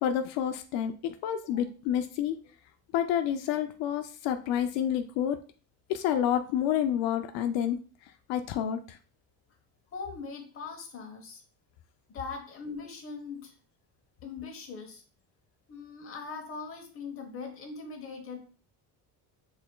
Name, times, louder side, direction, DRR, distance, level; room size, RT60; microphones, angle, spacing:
voice 1, 0.0-2.4 2.9-5.4 5.9-9.0, left 10 dB, 80° left, 7 dB, 0.5 m, -29 dB
voice 2, 9.9-11.4 12.1-13.5 14.2-15.0 15.7-18.4, left 4 dB, 30° left, 3 dB, 1.0 m, -40 dB
6.2 x 3.6 x 2.2 m, 0.39 s
cardioid pair, 175°, 42 cm